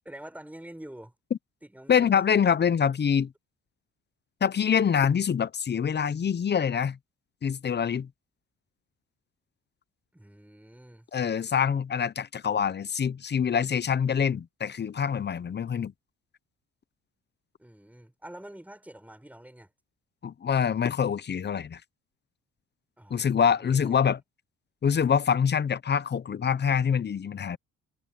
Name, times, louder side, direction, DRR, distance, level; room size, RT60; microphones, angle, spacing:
voice 1, 0.0-1.1 1.6-2.2 10.1-11.1 14.1-14.4 17.6-19.7 23.0-24.1, right 1 dB, 5° right, 5.9 m, -47 dB
voice 2, 1.9-3.3 4.4-7.0 7.4-8.1 11.1-15.9 20.2-21.8 23.1-24.2 24.8-27.6, left 7 dB, 35° left, 0.7 m, -25 dB
cardioid pair, 90°, 30 cm